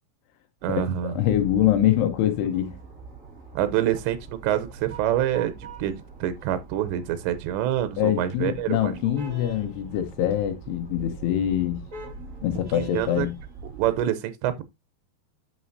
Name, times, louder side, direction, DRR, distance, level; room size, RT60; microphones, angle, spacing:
sound 1, 0.6-14.0, right 5 dB, 45° right, 1.0 m, -43 dB
voice 1, 0.6-1.2 3.6-5.9 6.2-9.2 12.7-13.3 13.7-14.6, right 11 dB, 90° right, 3.1 m, -26 dB
voice 2, 1.2-2.8 8.0-11.8 12.4-13.4, left 11 dB, 75° left, 2.8 m, -24 dB
9.0 x 6.3 x 2.6 m
omnidirectional pair, 5.0 m